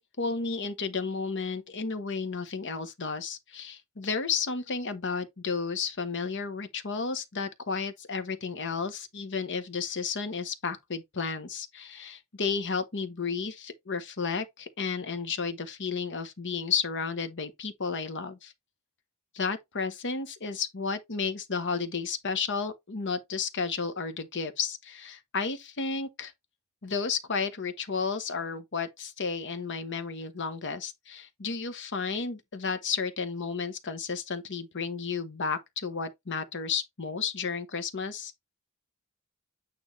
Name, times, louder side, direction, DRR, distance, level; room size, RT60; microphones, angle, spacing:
voice 1, 0.0-18.5 19.3-26.3 26.8-38.3, left 5 dB, 55° left, 1.1 m, -32 dB
8.7 x 3.8 x 3.3 m
head